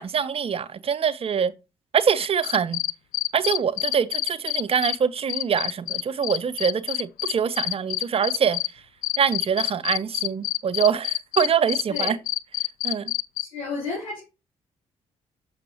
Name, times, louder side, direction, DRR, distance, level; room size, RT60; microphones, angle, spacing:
voice 1, 0.0-1.5 1.9-2.8 3.3-8.6 9.2-12.2 12.8-13.1, right 7 dB, 35° right, 0.6 m, -24 dB
sound 1, 2.2-5.0 5.3-8.7 9.0-13.4, left 15 dB, 55° left, 0.4 m, -26 dB
voice 2, 13.5-14.2, left 3 dB, 80° left, 3.6 m, -31 dB
6.7 x 5.6 x 2.9 m
figure-of-eight pair, 40°, 17 cm